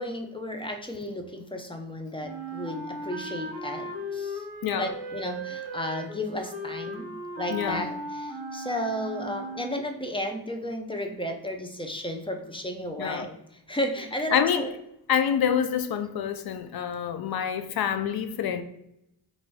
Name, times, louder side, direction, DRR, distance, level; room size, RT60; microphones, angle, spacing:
voice 1, 0.0-4.4 4.7-7.1 7.4-13.4 13.7-14.7, left 1 dB, 10° left, 0.6 m, -33 dB
Wind instrument woodwind instrument, 2.2-9.9, right 1 dB, 55° right, 1.0 m, -37 dB
voice 2, 7.5-7.8 13.0-13.3 14.3-14.7 15.1-18.6, left 8 dB, 60° left, 0.6 m, -27 dB
5.1 x 2.6 x 3.1 m
cardioid pair, 85°, 42 cm